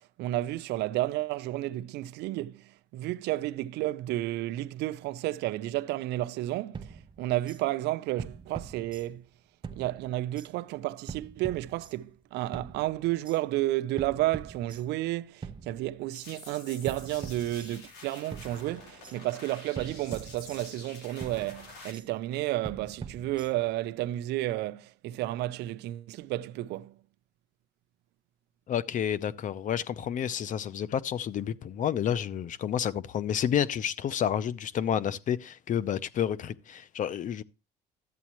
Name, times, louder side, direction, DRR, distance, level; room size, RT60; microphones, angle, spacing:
voice 1, 0.0-9.3 9.7-27.0, right 16 dB, 85° right, 0.6 m, -32 dB
sound 1, 6.7-7.6 8.2-9.3 9.6-10.5 11.1-12.2 12.5-13.4 14.0-15.1 15.4-16.3 16.9-18.0 18.3-19.2 19.8-20.9 21.2-22.1 22.6-23.8, right 5 dB, 30° right, 0.8 m, -43 dB
sound 2, 16.1-21.9, left 3 dB, 85° left, 3.2 m, -48 dB
voice 2, 28.7-37.4, left 9 dB, 50° left, 0.6 m, -30 dB
13.0 x 8.2 x 3.0 m
cardioid pair, 110°, 17 cm